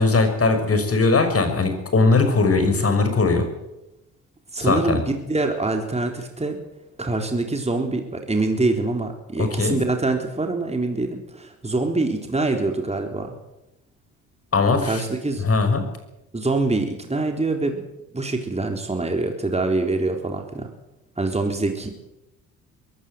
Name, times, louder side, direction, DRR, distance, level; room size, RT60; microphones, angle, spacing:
voice 1, 0.0-3.5 4.6-5.0 9.4-9.8 14.5-15.0 15.4-15.8, left 3 dB, 35° left, 7 dB, 5.9 m, -19 dB
voice 2, 4.5-6.6 7.0-13.3 14.8-15.5 16.3-17.8 18.1-20.7 21.2-21.9, right 2 dB, 15° right, 4 dB, 3.9 m, -25 dB
22.0 x 16.5 x 8.0 m, 0.92 s
hypercardioid pair, 50°, 42 cm